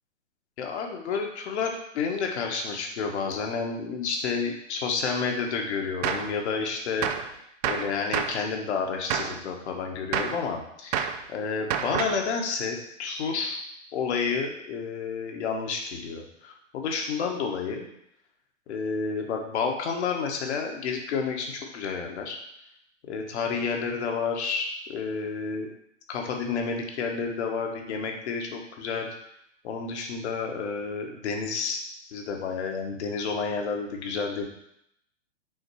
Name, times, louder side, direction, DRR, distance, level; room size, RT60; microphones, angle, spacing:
voice 1, 0.6-7.1 7.7-13.6 13.9-17.9 18.7-22.4 23.1-25.7 26.1-29.1 29.6-31.8 32.1-34.5, left 5 dB, 60° left, 2 dB, 1.5 m, -30 dB
Gunshot gunfire, 6.0-6.3 7.0-7.3 7.6-8.4 9.1-9.4 10.1-10.4 10.9-11.2 11.7-12.2, right 8 dB, 35° right, 0.4 m, -29 dB
6.3 x 3.8 x 4.8 m, 0.75 s
hypercardioid pair, 120°, 38 cm